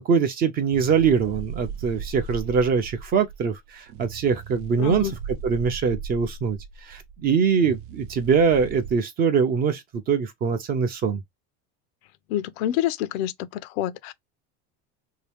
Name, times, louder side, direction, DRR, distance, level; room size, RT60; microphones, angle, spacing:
voice 1, 0.1-11.2, right 6 dB, 30° right, 0.5 m, -23 dB
sound 1, 0.7-8.9, right 7 dB, 75° right, 0.7 m, -37 dB
voice 2, 4.8-5.1 12.3-14.1, left 12 dB, 85° left, 0.6 m, -27 dB
2.7 x 2.6 x 3.3 m
cardioid pair, 155°, 32 cm